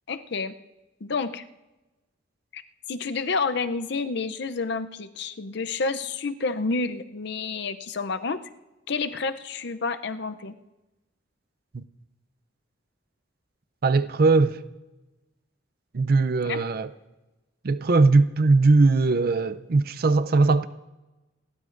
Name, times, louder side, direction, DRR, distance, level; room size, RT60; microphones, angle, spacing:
voice 1, 0.1-0.6 1.0-1.4 2.5-2.6 2.9-8.4 8.9-10.6 16.5-16.6, left 4 dB, 60° left, 0.6 m, -29 dB
voice 2, 13.8-14.6 15.9-16.9 17.6-20.7, right 3 dB, 50° right, 0.5 m, -20 dB
28.5 x 12.5 x 2.6 m
head